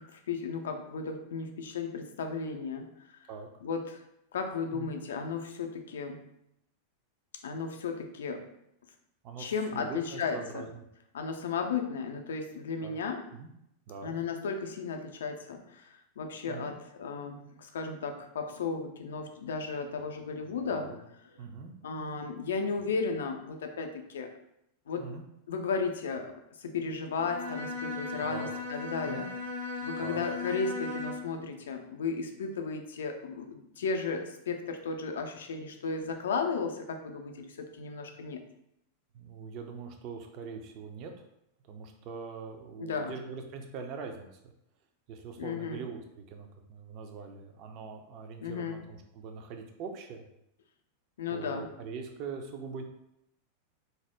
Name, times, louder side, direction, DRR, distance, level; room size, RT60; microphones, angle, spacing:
voice 1, 0.0-3.2 3.6-4.0 4.3-6.2 7.4-8.4 9.4-10.7 11.1-13.2 14.0-20.9 21.8-24.3 24.9-25.0 25.5-29.3 29.8-38.4 42.8-43.2 45.4-45.8 48.4-48.8 51.2-51.7, left 5 dB, 65° left, 5 dB, 0.3 m, -35 dB
voice 2, 9.2-10.8 12.8-13.0 13.3-13.5 13.9-14.2 16.5-16.7 20.7-21.0 21.4-21.7 25.0-25.3 28.2-28.5 29.0-29.3 30.0-30.2 39.1-41.1 41.7-44.5 45.1-50.3 51.3-52.8, right 5 dB, 40° right, 4 dB, 0.4 m, -42 dB
Bowed string instrument, 27.2-31.4, left 3 dB, 85° right, 1.0 m, -37 dB
2.7 x 2.0 x 3.3 m, 0.80 s
figure-of-eight pair, 90°, 0 cm